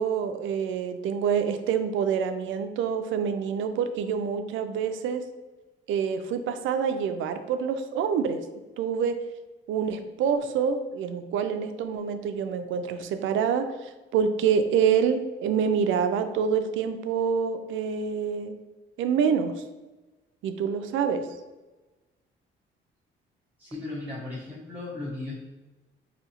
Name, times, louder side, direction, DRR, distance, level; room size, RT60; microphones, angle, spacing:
voice 1, 0.0-5.3 5.9-8.4 8.8-9.2 9.7-18.6 19.0-19.5 20.4-21.2, right 7 dB, 80° right, 9 dB, 0.4 m, -26 dB
voice 2, 23.6-25.3, left 2 dB, 10° right, -10 dB, 1.1 m, -36 dB
5.1 x 2.7 x 2.9 m, 1.2 s
cardioid pair, 90°, 20 cm